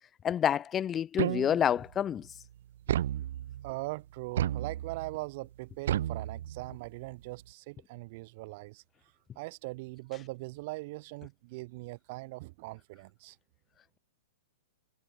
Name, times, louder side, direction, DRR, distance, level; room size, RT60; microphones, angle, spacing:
voice 1, 0.2-2.3, left 9 dB, 20° left, 0.4 m, -28 dB
sound 1, 1.2-1.9 2.9-3.7 4.4-5.2 5.9-6.9, right 11 dB, 65° right, 0.3 m, -32 dB
voice 2, 3.6-8.8 9.4-13.4, right 23 dB, 50° right, 5.9 m, -41 dB
hypercardioid pair, 130°, 0 cm